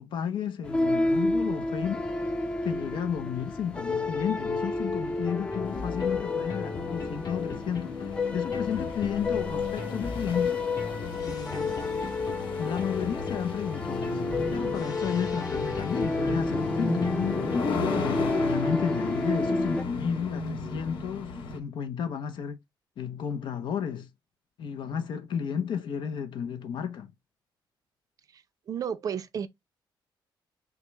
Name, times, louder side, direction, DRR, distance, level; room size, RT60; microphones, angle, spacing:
voice 1, 0.0-10.6 11.2-11.8 12.6-14.2 14.5-17.5 18.0-22.6 23.0-24.1 24.6-27.1, left 8 dB, 65° left, 0.6 m, -33 dB
sound 1, 0.6-19.8, left 3 dB, 10° left, 0.4 m, -31 dB
sound 2, 5.5-18.0, left 4 dB, 45° left, 1.3 m, -38 dB
sound 3, 5.7-21.6, left 3 dB, 85° left, 1.3 m, -35 dB
voice 2, 28.7-29.5, right 7 dB, 45° right, 0.5 m, -32 dB
5.9 x 2.1 x 3.2 m
wide cardioid pair, 165°, 9 cm